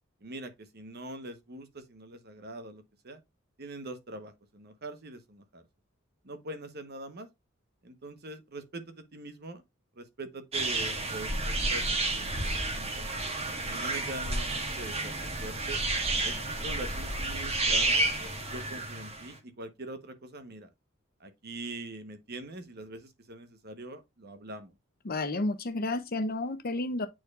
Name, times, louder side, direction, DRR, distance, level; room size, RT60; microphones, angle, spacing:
voice 1, 0.2-3.2 3.6-5.6 6.2-7.3 7.8-9.6 10.0-13.1 13.7-15.8 16.2-18.0 18.5-20.7 21.2-24.7, right 1 dB, 55° right, 1.1 m, -43 dB
sound 1, 10.5-19.3, right 2 dB, 30° right, 1.5 m, -31 dB
voice 2, 25.0-27.1, left 2 dB, 50° left, 0.8 m, -31 dB
8.6 x 4.6 x 2.4 m
head